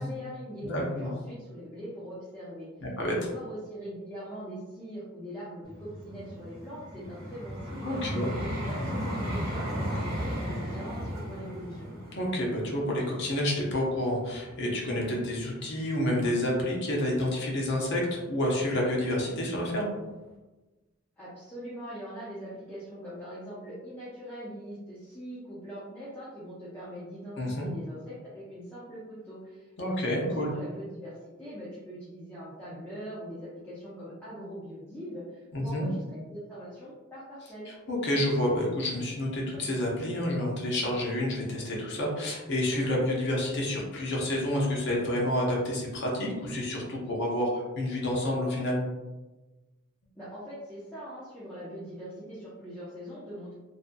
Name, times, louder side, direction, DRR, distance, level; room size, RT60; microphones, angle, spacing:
voice 1, 0.0-0.7 1.0-2.7 3.0-8.0 8.3-9.0 9.3-11.9 21.2-36.0 36.3-37.7 50.2-53.6, equal, 10° left, -10 dB, 0.5 m, -42 dB
voice 2, 0.6-1.1 2.8-3.1 7.8-8.3 12.1-19.9 27.4-27.7 29.8-30.5 35.5-35.9 37.7-48.8, left 1 dB, 55° left, -2 dB, 0.6 m, -29 dB
Vehicle, 5.6-14.7 15.3-15.5, equal, 50° right, 1.1 m, -35 dB
2.5 x 2.2 x 2.5 m, 1.2 s
head